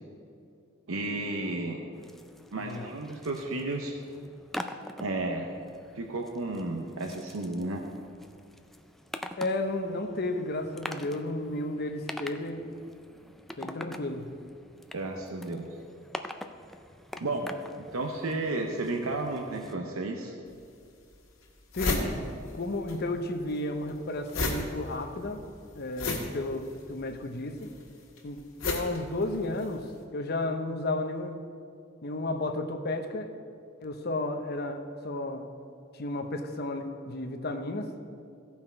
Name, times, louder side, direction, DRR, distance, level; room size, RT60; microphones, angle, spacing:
voice 1, 0.9-1.9 2.5-3.9 5.0-5.5 5.9-7.8 14.9-15.7 17.2-20.3, right 2 dB, 85° right, 3 dB, 0.8 m, -33 dB
sound 1, 1.9-19.7, equal, ahead, 0.4 m, -45 dB
voice 2, 2.6-2.9 9.4-12.7 13.6-14.3 21.7-25.4 25.7-27.7 28.2-31.5 32.0-33.3 33.8-35.5 35.9-37.9, left 2 dB, 50° left, 6 dB, 0.8 m, -33 dB
sound 2, 20.5-20.6 21.1-21.2 21.4-23.0 23.2-29.8, left 2 dB, 80° left, 1.7 m, -33 dB
16.0 x 5.8 x 4.4 m, 2.4 s
head